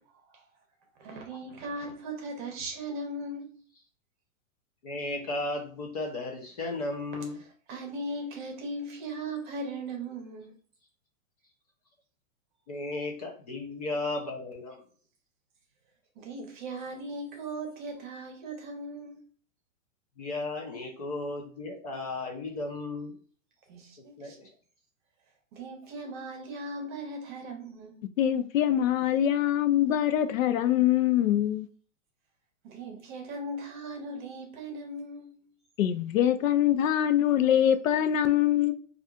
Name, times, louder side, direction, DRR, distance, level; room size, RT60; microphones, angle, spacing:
voice 1, 1.0-3.6 7.7-10.5 16.2-19.3 23.7-24.4 25.5-28.0 32.6-35.5, right 2 dB, 35° right, 0.9 m, -38 dB
voice 2, 4.8-7.4 12.7-14.8 20.2-23.2 24.2-24.5, left 2 dB, 30° left, 0.5 m, -35 dB
voice 3, 28.2-31.7 35.8-38.7, left 11 dB, 75° left, 0.6 m, -24 dB
4.2 x 2.4 x 2.3 m
hypercardioid pair, 165°, 40 cm